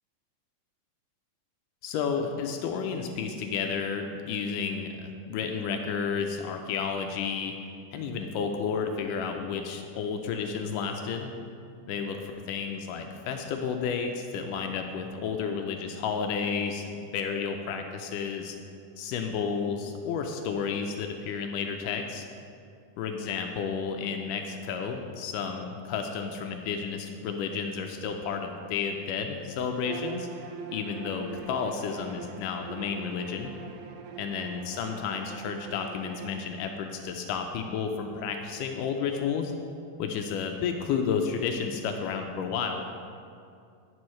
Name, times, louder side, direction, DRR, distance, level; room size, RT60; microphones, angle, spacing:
voice 1, 1.8-7.6 7.9-11.3 11.9-12.2 12.5-18.6 19.0-22.3 23.0-30.3 30.7-33.5 34.2-39.5 40.0-42.9, left 6 dB, 80° left, 4 dB, 1.9 m, -31 dB
Bowed string instrument, 29.8-36.5, right 7 dB, 80° right, 2.3 m, -43 dB
11.0 x 9.7 x 3.1 m, 2.4 s
omnidirectional pair, 4.2 m